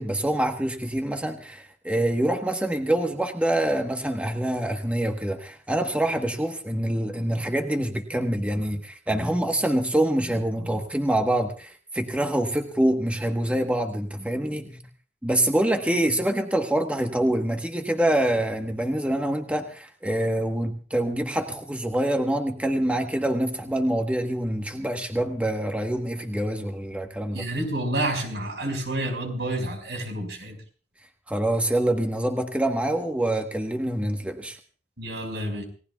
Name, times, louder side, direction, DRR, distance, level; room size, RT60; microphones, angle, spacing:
voice 1, 0.0-14.8 15.2-27.5 31.3-34.6, right 1 dB, 10° right, 3 dB, 1.2 m, -25 dB
voice 2, 27.3-30.6 35.0-35.6, right 1 dB, 80° right, 4 dB, 5.3 m, -29 dB
29.0 x 18.0 x 2.4 m, 0.41 s
head